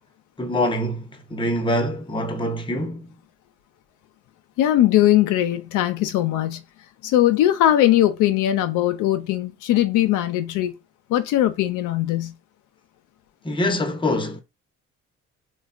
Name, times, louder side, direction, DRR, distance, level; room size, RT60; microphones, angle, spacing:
voice 1, 0.4-3.1 13.4-14.4, left 1 dB, 15° left, 0.7 m, -24 dB
voice 2, 4.6-6.6 7.0-10.8 11.1-12.3, left 13 dB, 90° left, 0.5 m, -20 dB
3.2 x 2.2 x 2.4 m
cardioid pair, 90°, 30 cm